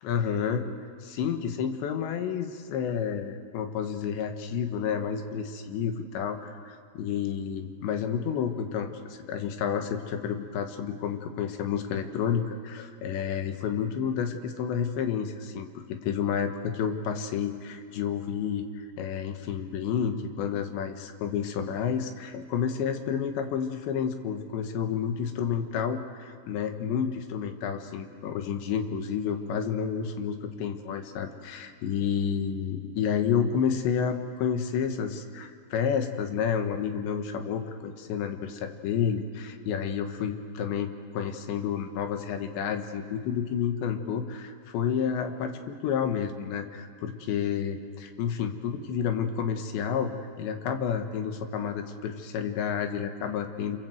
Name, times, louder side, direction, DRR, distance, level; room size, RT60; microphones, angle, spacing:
voice 1, 0.0-0.7 1.0-53.8, left 7 dB, 85° left, 6 dB, 3.7 m, -30 dB
27.0 x 27.0 x 7.9 m, 2.1 s
omnidirectional pair, 5.0 m